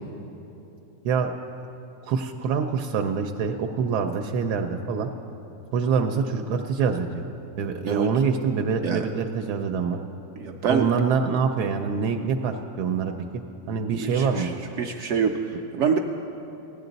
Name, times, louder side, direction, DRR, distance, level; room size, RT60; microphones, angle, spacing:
voice 1, 2.1-5.1 5.7-7.2 7.6-10.0 10.7-13.4 13.7-14.5, right 6 dB, 85° right, 5 dB, 1.1 m, -25 dB
voice 2, 10.4-10.9 14.0-14.5 14.8-16.0, right 6 dB, 70° right, 3 dB, 0.7 m, -25 dB
16.0 x 10.5 x 4.0 m, 3.0 s
omnidirectional pair, 1.7 m